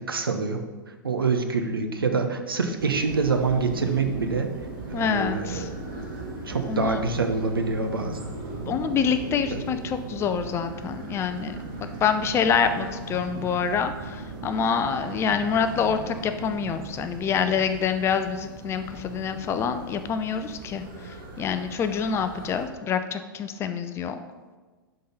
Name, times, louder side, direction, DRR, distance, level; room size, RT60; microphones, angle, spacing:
voice 1, 0.1-0.7 1.0-4.5 4.9-5.7 6.5-8.2 9.5-9.6, right 4 dB, 75° right, 6 dB, 1.0 m, -26 dB
sound 1, 2.8-22.7, right 3 dB, 45° right, 2.0 m, -38 dB
voice 2, 4.9-5.7 6.7-7.0 8.7-11.6 12.0-20.8 21.4-24.1, left 6 dB, 20° left, 9 dB, 0.5 m, -26 dB
11.5 x 4.0 x 5.3 m, 1.3 s
figure-of-eight pair, 100°, 12 cm